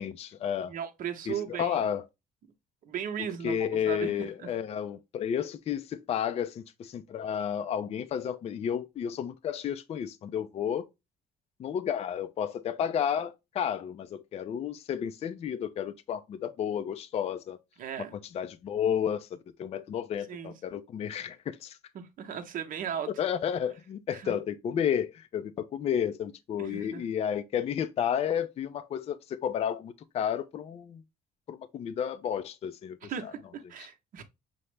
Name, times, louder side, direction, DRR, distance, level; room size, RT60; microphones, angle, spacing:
voice 1, 0.0-0.7 1.3-2.0 3.4-10.8 11.6-17.6 18.3-21.8 23.2-31.0 31.5-33.3, left 8 dB, 40° left, 0.4 m, -32 dB
voice 2, 0.7-1.9 2.8-4.5 17.8-18.1 20.3-20.5 21.9-23.1 24.1-24.3 26.6-27.0 33.0-34.2, right 8 dB, 55° right, 0.8 m, -37 dB
5.6 x 2.0 x 3.2 m
cardioid pair, 110°, 17 cm